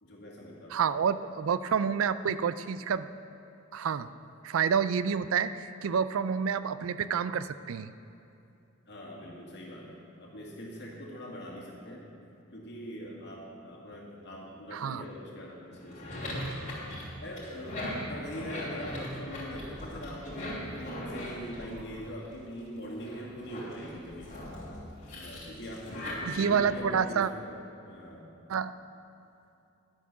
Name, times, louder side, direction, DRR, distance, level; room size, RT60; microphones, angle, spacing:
voice 1, 0.0-0.9 8.9-12.1 12.5-16.7 17.2-24.4 25.1-28.3, equal, 55° left, -2 dB, 2.1 m, -42 dB
voice 2, 0.7-3.1 3.7-4.1 4.4-7.9 14.7-15.0 26.3-27.3 28.5-28.7, right 7 dB, 75° right, 14 dB, 0.4 m, -28 dB
sound 1, 15.7-22.4 22.9-26.8, left 1 dB, 35° left, 2.8 m, -40 dB
11.0 x 8.3 x 6.0 m, 2.7 s
head